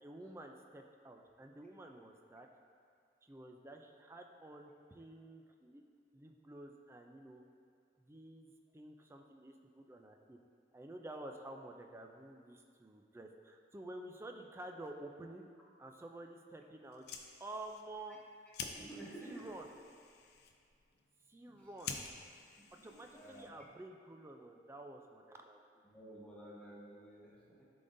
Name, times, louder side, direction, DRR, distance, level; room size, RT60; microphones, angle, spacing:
voice 1, 0.0-2.5 3.2-5.8 6.1-7.4 8.0-10.4 10.7-15.5 15.8-17.0 17.4-18.2 19.2-19.7 21.3-22.0 22.8-25.6, right 1 dB, 15° right, 3 dB, 0.3 m, -50 dB
Fire, 16.8-23.8, left 5 dB, 60° left, 0.5 m, -50 dB
voice 2, 18.8-19.5 21.5-21.7 22.6-23.5 25.8-27.6, right 1 dB, 5° left, -6 dB, 1.0 m, -52 dB
11.0 x 3.8 x 2.6 m, 2.3 s
head